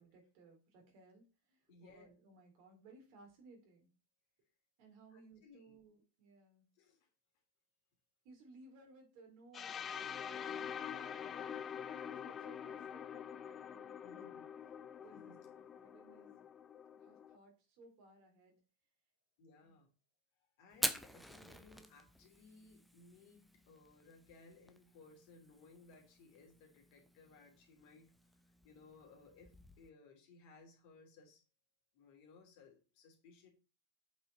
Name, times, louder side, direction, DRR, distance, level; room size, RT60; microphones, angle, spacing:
voice 1, 0.0-3.9 4.8-6.7 8.2-11.5 11.9-14.4 14.9-15.3 15.7-16.5 16.9-18.6 19.6-19.8, right 3 dB, 45° right, 2 dB, 3.5 m, -62 dB
voice 2, 1.7-2.1 5.1-5.8 6.7-7.0 14.0-14.4 15.1-15.4 19.4-19.9 20.6-28.1 28.6-31.4 31.9-33.5, left 3 dB, 45° left, 2 dB, 3.1 m, -61 dB
sound 1, 9.5-17.4, left 8 dB, 25° left, 0.5 m, -46 dB
Fire, 20.7-29.9, equal, ahead, 0.9 m, -47 dB
8.4 x 5.8 x 4.1 m, 0.33 s
figure-of-eight pair, 90°, 0 cm